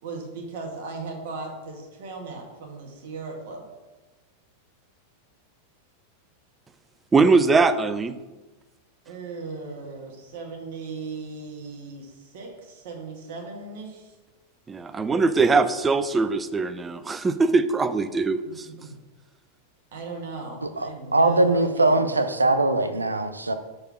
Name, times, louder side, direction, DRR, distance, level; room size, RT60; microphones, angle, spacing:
voice 1, 0.0-3.6 9.1-14.1 18.7-19.0 19.9-22.3, right 3 dB, 50° right, 1 dB, 1.8 m, -37 dB
voice 2, 7.1-8.2 14.7-18.7, right 4 dB, 15° right, 13 dB, 0.5 m, -21 dB
voice 3, 20.6-23.5, right 2 dB, 80° right, 9 dB, 0.6 m, -22 dB
6.6 x 4.2 x 6.2 m, 1.2 s
figure-of-eight pair, 90°, 0 cm